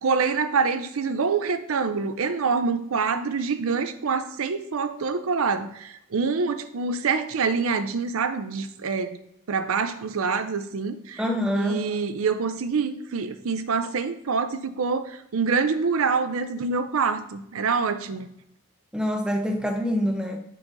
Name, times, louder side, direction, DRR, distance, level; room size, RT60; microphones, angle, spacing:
voice 1, 0.0-9.2 9.5-11.2 11.5-18.3, right 5 dB, 75° right, 11 dB, 0.5 m, -26 dB
voice 2, 11.2-11.8 18.9-20.4, equal, 5° right, 3 dB, 0.6 m, -25 dB
7.4 x 5.6 x 2.6 m, 0.77 s
head